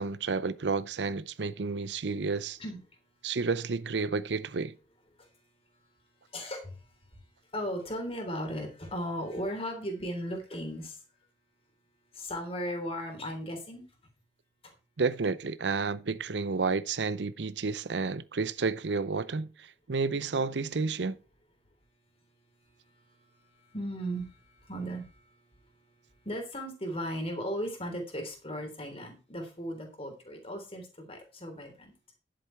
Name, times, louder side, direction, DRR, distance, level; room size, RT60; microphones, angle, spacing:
voice 1, 0.0-2.6 3.2-4.8 15.0-21.2, right 4 dB, 85° right, 0.6 m, -31 dB
voice 2, 6.3-6.8 7.5-11.0 12.1-13.8 23.6-25.1 26.3-31.9, equal, 35° left, 3.6 m, -36 dB
10.5 x 7.8 x 4.5 m
head